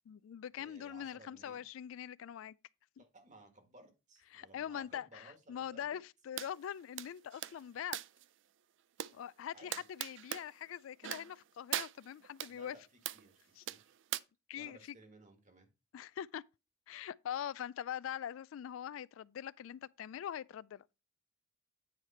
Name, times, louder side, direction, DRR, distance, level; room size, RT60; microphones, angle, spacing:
voice 1, 0.1-2.6 3.0-3.1 4.3-8.0 9.1-12.8 13.6-13.7 14.5-15.0 15.9-16.4 16.9-20.8, left 9 dB, 75° left, 0.3 m, -43 dB
voice 2, 0.6-1.6 3.0-6.0 9.5-9.8 12.5-13.9 14.5-15.7, right 1 dB, 40° right, 1.7 m, -59 dB
sound 1, 6.4-6.5 7.0-8.3 9.0-9.1 9.7-10.5 11.0-11.4 11.7-12.5 13.1-13.3 13.7-14.2, right 12 dB, 65° right, 0.4 m, -40 dB
9.2 x 4.8 x 4.3 m
head